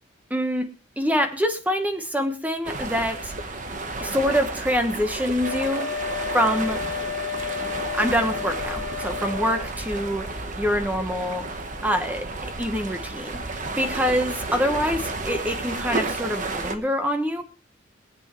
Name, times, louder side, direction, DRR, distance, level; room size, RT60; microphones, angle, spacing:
voice 1, 0.3-0.7 1.0-3.3 4.0-5.9 6.3-6.8 7.6-7.7 7.9-11.5 11.8-12.3 12.6-17.4, equal, 10° right, 6 dB, 1.2 m, -25 dB
sound 1, 2.6-16.7, right 3 dB, 40° right, 1.2 m, -32 dB
Wind instrument woodwind instrument, 5.4-9.7, left 8 dB, 75° left, 0.7 m, -32 dB
22.5 x 8.2 x 3.2 m, 0.37 s
head